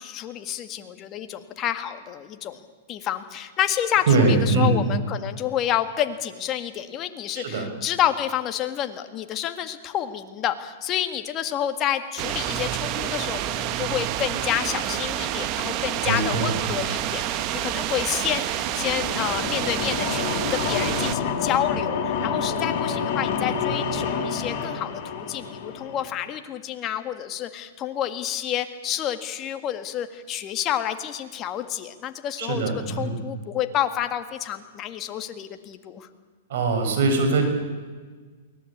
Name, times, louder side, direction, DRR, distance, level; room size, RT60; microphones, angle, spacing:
voice 1, 0.0-2.6 2.9-36.1, left 11 dB, 30° left, 8 dB, 1.9 m, -29 dB
voice 2, 4.1-4.8 7.3-7.7 16.0-16.5 32.4-33.2 36.5-37.4, right 3 dB, 70° right, 6 dB, 6.4 m, -22 dB
sound 1, 12.2-21.1, right 12 dB, 40° right, 1.4 m, -28 dB
sound 2, 18.2-26.1, left 6 dB, 50° left, 4.9 m, -28 dB
23.5 x 18.0 x 8.8 m, 1.4 s
hypercardioid pair, 130°, 0 cm